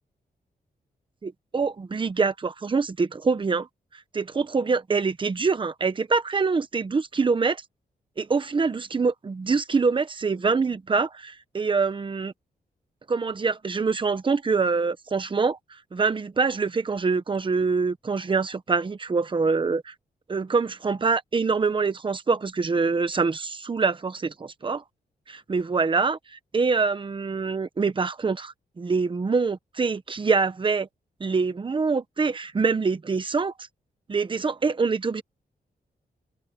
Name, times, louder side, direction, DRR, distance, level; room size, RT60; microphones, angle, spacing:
voice 1, 1.2-3.7 4.1-7.6 8.2-12.3 13.1-15.6 15.9-19.9 20.3-24.8 25.3-30.9 31.2-33.5 34.1-35.2, right 4 dB, 30° right, 1.1 m, -25 dB
open air
wide cardioid pair, 145°, 16 cm